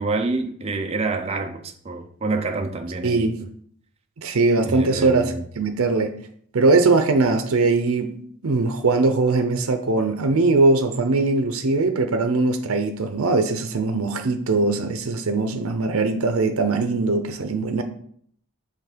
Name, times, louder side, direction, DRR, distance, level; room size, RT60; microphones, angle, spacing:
voice 1, 0.0-3.3 4.6-5.4, right 3 dB, 25° right, 0.4 m, -27 dB
voice 2, 3.0-3.4 4.2-6.1 6.5-8.1 8.4-17.8, right 3 dB, 75° right, 0.6 m, -21 dB
5.7 x 3.3 x 5.0 m
head